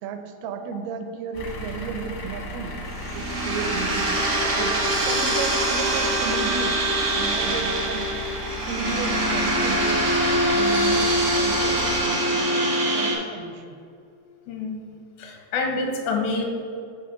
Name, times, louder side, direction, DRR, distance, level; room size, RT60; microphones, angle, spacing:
voice 1, 0.0-2.8 3.1-4.3 4.5-6.8 7.1-8.1 8.7-10.0 10.5-11.9 12.3-13.8, right 5 dB, 80° right, 7 dB, 2.6 m, -34 dB
sound 1, 1.3-12.0, left 1 dB, 70° left, 1.3 m, -36 dB
sound 2, 2.9-13.1, right 1 dB, 60° right, 0.9 m, -23 dB
voice 2, 14.5-16.5, left 3 dB, 85° left, 2 dB, 3.5 m, -28 dB
9.0 x 4.1 x 7.0 m, 2.6 s
omnidirectional pair, 4.8 m